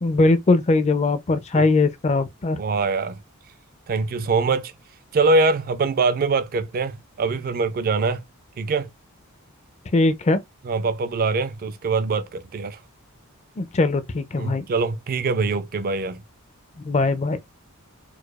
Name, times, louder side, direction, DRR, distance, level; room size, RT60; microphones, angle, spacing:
voice 1, 0.0-2.6 9.9-10.4 13.6-14.6 16.8-17.4, left 3 dB, 30° left, 0.4 m, -20 dB
voice 2, 2.6-3.2 3.9-4.7 5.1-8.2 8.6-8.9 10.7-12.8 14.4-16.2, right 3 dB, 40° right, 0.3 m, -23 dB
4.6 x 2.3 x 2.2 m
head